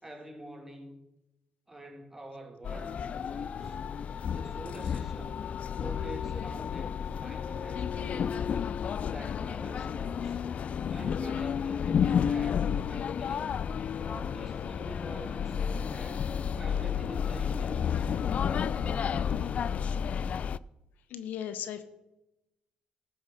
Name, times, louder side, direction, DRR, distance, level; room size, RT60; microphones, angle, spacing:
voice 1, 0.0-1.0 1.7-3.8 4.3-5.5 5.8-8.6 9.1-10.4 10.9-13.6 14.0-16.3 16.6-18.1 18.4-19.7, right 1 dB, 10° right, 2 dB, 2.6 m, -46 dB
sound 1, 2.6-20.6, left 7 dB, 50° left, 0.3 m, -31 dB
voice 2, 21.1-21.8, left 9 dB, 80° left, 11 dB, 0.9 m, -36 dB
14.0 x 6.3 x 6.5 m, 0.92 s
cardioid pair, 85°, 3 cm